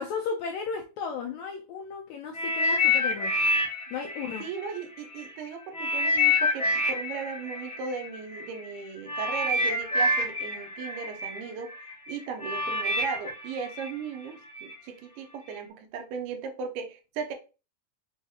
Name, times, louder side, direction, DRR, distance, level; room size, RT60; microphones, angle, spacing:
voice 1, 0.0-3.3 3.9-4.4, left 5 dB, 85° left, 1.6 m, -34 dB
sound 1, 2.3-5.3 5.7-14.7 15.4-15.6, left 2 dB, 70° left, 0.5 m, -28 dB
voice 2, 4.4-11.7 12.1-17.3, right 6 dB, 85° right, 2.3 m, -37 dB
6.0 x 2.3 x 2.8 m
omnidirectional pair, 3.7 m